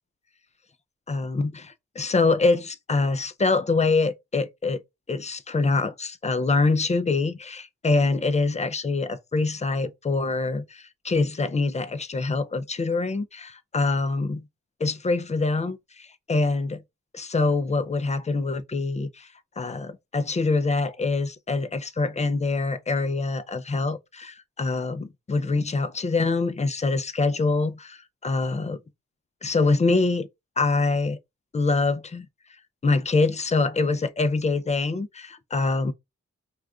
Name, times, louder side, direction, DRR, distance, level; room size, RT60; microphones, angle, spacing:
voice 1, 1.1-4.8 5.1-14.5 14.8-16.8 17.1-19.3 19.6-28.8 29.4-30.3 30.6-31.2 31.5-32.3 32.8-35.9, left 3 dB, 25° left, 0.4 m, -25 dB
2.4 x 2.3 x 3.5 m
cardioid pair, 70°, 29 cm